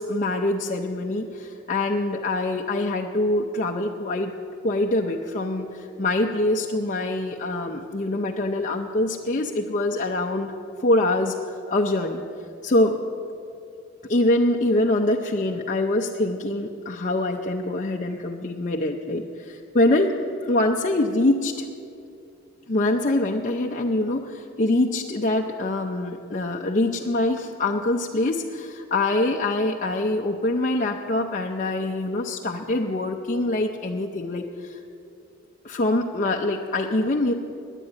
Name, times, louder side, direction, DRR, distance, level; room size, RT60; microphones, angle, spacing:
voice 1, 0.0-4.3 4.6-10.5 10.8-12.2 12.6-13.0 14.1-21.7 22.7-34.8 35.6-37.3, left 2 dB, 40° left, 1 dB, 0.6 m, -24 dB
9.9 x 9.4 x 9.4 m, 2.6 s
head